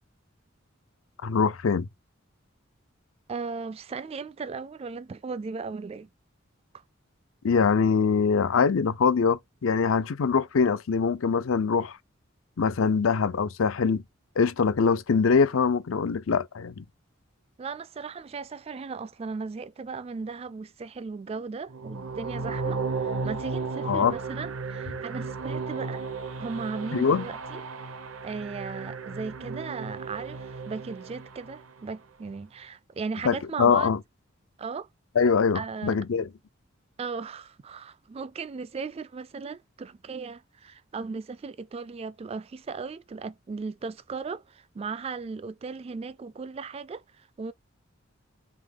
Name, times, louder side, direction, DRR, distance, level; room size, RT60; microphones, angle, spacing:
voice 1, 1.2-1.9 7.4-12.0 12.6-14.0 14.4-16.8 23.8-24.1 26.9-27.3 33.2-34.0 35.2-36.3, left 5 dB, 75° left, 0.5 m, -23 dB
voice 2, 3.3-6.1 17.6-26.0 26.4-27.6 28.2-33.9 34.6-34.9 35.5-36.0 37.0-47.5, right 4 dB, 30° right, 0.3 m, -37 dB
sound 1, 21.7-31.8, right 4 dB, 75° right, 0.8 m, -34 dB
3.7 x 3.5 x 3.6 m
head